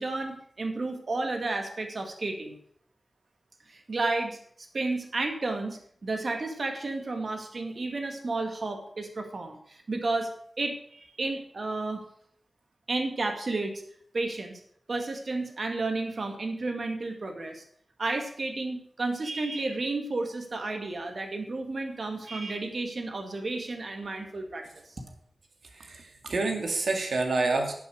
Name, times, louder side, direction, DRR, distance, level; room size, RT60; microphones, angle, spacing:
voice 1, 0.0-2.6 3.7-4.4 4.7-10.3 10.6-12.0 12.9-13.8 14.1-14.6 14.9-17.6 18.0-24.7, right 3 dB, 65° right, 4 dB, 2.1 m, -32 dB
voice 2, 25.6-27.7, right 3 dB, 85° right, 3 dB, 2.1 m, -28 dB
11.5 x 7.0 x 6.3 m, 0.64 s
wide cardioid pair, 60°, 0 cm